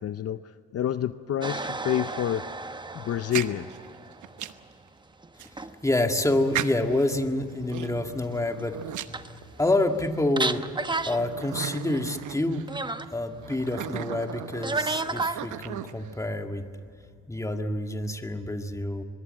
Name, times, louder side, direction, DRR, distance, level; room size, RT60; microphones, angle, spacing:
voice 1, 0.0-2.5 2.9-3.7, left 10 dB, 55° left, 12 dB, 0.7 m, -28 dB
sound 1, 1.4-4.7 5.2-5.8 6.1-6.2 8.5-8.6 8.9-9.7 10.0-10.1 10.4-11.2 11.5-11.6 12.7-13.1 14.6-15.4, right 3 dB, 15° right, 1.0 m, -32 dB
sound 2, 3.1-4.7 5.4-5.5 6.5-7.1 7.7-9.8 10.4-10.5 11.1-12.7 13.4-16.2, right 11 dB, 75° right, 1.0 m, -36 dB
voice 2, 5.4-8.8 9.6-10.7 11.0-12.7 13.1-16.7 17.3-19.0, left 2 dB, 10° left, 5 dB, 1.9 m, -27 dB
23.5 x 21.5 x 7.7 m, 2.4 s
cardioid pair, 90°, 30 cm